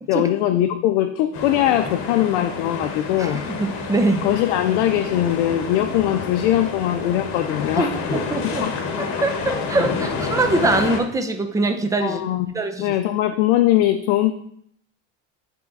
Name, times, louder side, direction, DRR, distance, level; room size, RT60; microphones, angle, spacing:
voice 1, 0.1-3.4 4.2-7.9 8.4-8.7 12.0-14.3, left 12 dB, 80° left, 6 dB, 0.6 m, -21 dB
sound 1, 1.3-11.0, left 4 dB, 55° left, 1.3 m, -28 dB
voice 2, 3.2-4.3 7.8-8.6 9.0-12.2 12.5-12.9, right 2 dB, 10° right, 6 dB, 0.6 m, -23 dB
9.2 x 3.5 x 4.0 m, 0.66 s
supercardioid pair, 125°, 34 cm